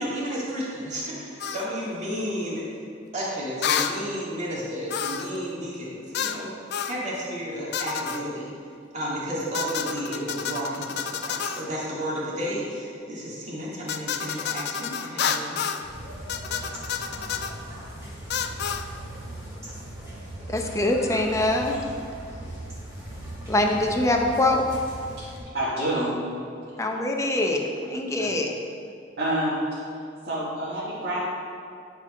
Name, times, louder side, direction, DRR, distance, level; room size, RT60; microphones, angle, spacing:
voice 1, 0.0-2.6 3.1-6.5 6.8-8.5 8.9-15.6, equal, 40° right, -6 dB, 2.1 m, -32 dB
sound 1, 1.4-1.7 3.6-4.0 4.9-5.4 6.1-6.4 6.7-7.0 7.7-8.2 9.5-11.7 13.9-15.8 16.3-17.5 18.3-18.9, left 7 dB, 60° left, 0.4 m, -29 dB
sound 2, 15.8-25.4, right 1 dB, 15° right, 1.9 m, -39 dB
voice 2, 20.5-21.8 23.5-24.6 26.8-28.5, left 1 dB, 15° left, 1 dB, 0.7 m, -24 dB
voice 3, 25.5-26.1 28.2-28.3 29.2-29.8 30.2-31.2, right 1 dB, 60° right, -11 dB, 1.9 m, -27 dB
10.0 x 4.5 x 5.0 m, 2.5 s
head